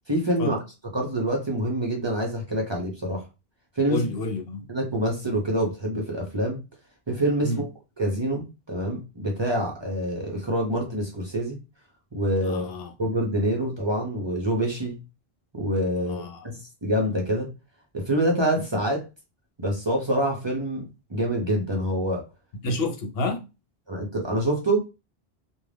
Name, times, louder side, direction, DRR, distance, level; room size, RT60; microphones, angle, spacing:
voice 1, 0.1-0.6 0.8-3.2 3.8-4.1 4.7-6.6 7.1-7.7 8.0-11.6 12.1-12.7 13.0-15.0 15.5-17.5 17.9-19.1 19.6-22.2 22.6-22.7 23.9-24.8, right 1 dB, 30° right, 0.6 m, -26 dB
voice 2, 3.9-4.6 7.4-7.6 12.5-12.9 16.1-16.4 22.6-23.5, left 2 dB, 70° left, 0.9 m, -29 dB
2.4 x 2.2 x 3.3 m
omnidirectional pair, 1.0 m